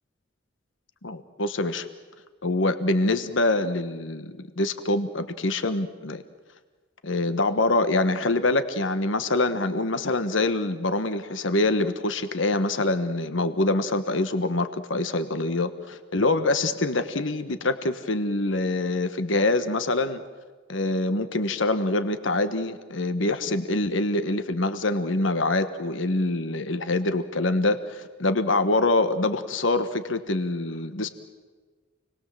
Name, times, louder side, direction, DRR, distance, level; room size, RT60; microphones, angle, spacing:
voice 1, 1.0-1.9 2.4-6.2 7.0-20.2 20.7-31.1, left 2 dB, 75° left, 10 dB, 1.4 m, -25 dB
29.0 x 20.5 x 7.7 m, 1.4 s
head